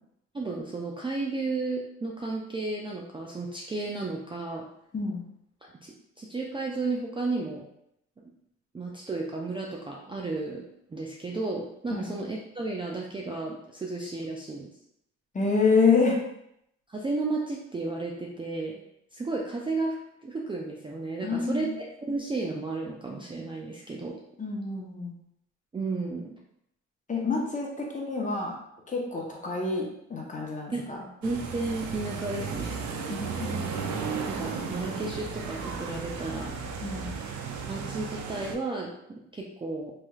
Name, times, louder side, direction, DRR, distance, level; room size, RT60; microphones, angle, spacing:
voice 1, 0.3-4.6 5.6-7.6 8.7-14.7 16.9-18.8 19.1-20.0 20.2-24.2 25.7-26.3 30.7-30.8 31.2-32.8 34.3-36.5 37.7-39.9, right 3 dB, 15° right, -2 dB, 0.4 m, -33 dB
voice 2, 4.9-5.2 11.9-12.1 15.3-16.2 21.2-21.7 24.4-25.2 27.1-28.5 28.9-31.0 32.9-33.8 36.8-37.1, left 4 dB, 25° left, -1 dB, 0.8 m, -27 dB
sound 1, 31.2-38.6, right 5 dB, 70° right, 0.5 m, -34 dB
3.1 x 2.9 x 2.3 m, 0.76 s
cardioid pair, 90°, 30 cm